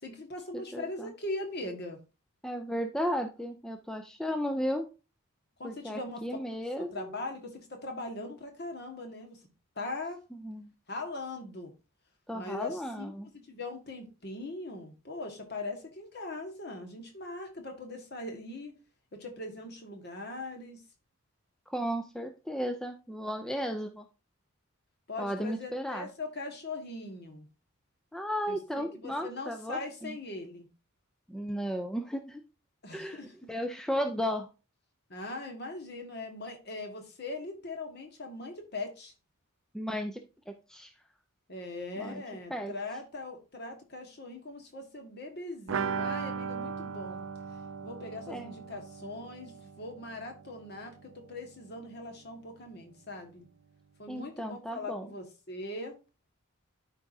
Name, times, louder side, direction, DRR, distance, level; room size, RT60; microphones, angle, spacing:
voice 1, 0.0-2.0 5.6-6.2 6.8-9.4 9.7-10.2 10.9-11.7 12.3-18.8 19.1-20.8 25.1-27.5 28.5-30.7 32.8-33.5 35.1-39.1 41.5-47.2 47.8-53.5 54.0-55.9, left 2 dB, 50° left, 1.6 m, -40 dB
voice 2, 0.5-1.1 2.4-4.9 5.6-7.2 10.4-10.7 12.3-13.3 21.7-24.1 25.2-26.1 28.1-30.2 31.3-32.4 32.9-34.5 39.7-40.9 42.0-42.2 42.5-42.7 48.3-48.5 54.1-55.1, equal, 5° left, 0.4 m, -35 dB
sound 1, 45.7-51.3 51.5-51.6 51.9-52.0, right 6 dB, 65° right, 0.4 m, -38 dB
12.5 x 4.7 x 2.7 m
head